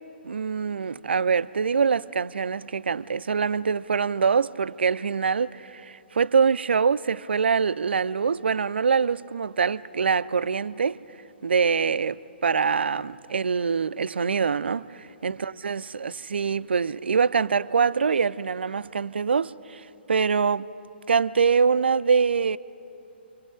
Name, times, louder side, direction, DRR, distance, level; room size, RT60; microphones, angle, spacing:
voice 1, 0.2-11.0 11.4-20.7 21.1-22.6, right 5 dB, 65° right, 0.5 m, -24 dB
29.5 x 24.5 x 5.0 m
figure-of-eight pair, 125°, 6 cm